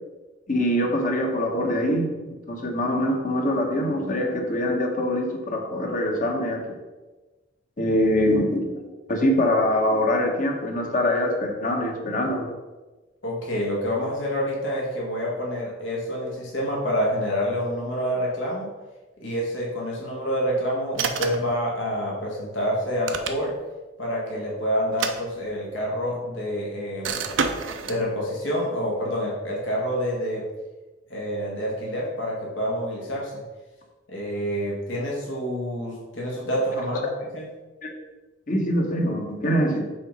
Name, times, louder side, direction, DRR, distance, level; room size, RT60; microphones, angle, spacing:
voice 1, 0.5-2.1 2.5-6.8 7.8-12.5 37.0-37.1 37.8-37.9 38.5-39.8, left 1 dB, 45° left, 2 dB, 1.1 m, -24 dB
voice 2, 13.2-18.7 19.2-23.5 24.0-27.2 27.8-30.4 31.1-33.4 34.1-37.5, equal, 80° left, -3 dB, 1.8 m, -27 dB
sound 1, 20.9-21.5 22.8-23.7 24.8-25.8 27.0-28.0, right 5 dB, 90° right, 0.6 m, -29 dB
5.7 x 3.9 x 5.3 m, 1.2 s
head